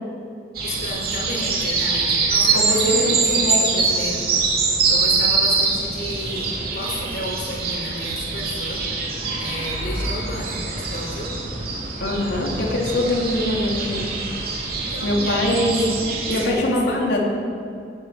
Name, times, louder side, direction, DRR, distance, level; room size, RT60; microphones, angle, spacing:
sound 1, 0.5-16.5, right 4 dB, 55° right, 3.0 m, -24 dB
voice 1, 0.6-4.2 4.5-8.8 9.1-11.3 14.8-15.7 16.0-16.1 16.4-17.0, left 1 dB, 55° left, -1 dB, 4.0 m, -33 dB
voice 2, 2.5-3.6 12.0-14.0 15.0-15.9 16.3-17.2, left 1 dB, 85° left, -1 dB, 3.0 m, -22 dB
17.5 x 9.5 x 7.6 m, 2.6 s
head